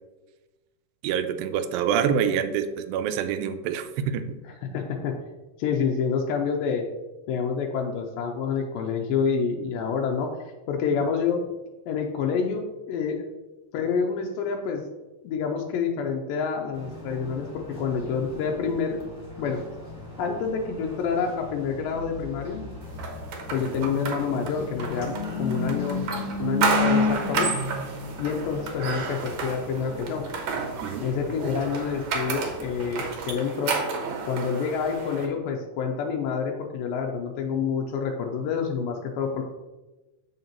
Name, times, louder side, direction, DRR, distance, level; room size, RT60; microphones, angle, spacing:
voice 1, 1.0-4.2 30.8-31.0, right 8 dB, 85° right, 9 dB, 2.3 m, -26 dB
voice 2, 4.7-5.2 5.6-6.9 7.3-10.3 10.7-11.4 11.9-13.2 13.7-14.8 15.2-19.0 19.4-19.6 20.2-22.7 23.5-26.0 26.4-27.5 28.2-30.2 31.0-33.8 34.3-39.4, left 6 dB, 85° left, 1 dB, 2.4 m, -28 dB
sound 1, 16.7-33.2, left 3 dB, 20° left, 1.2 m, -34 dB
sound 2, 23.0-35.3, right 5 dB, 65° right, 1.8 m, -31 dB
7.5 x 6.5 x 2.9 m, 1.1 s
omnidirectional pair, 4.0 m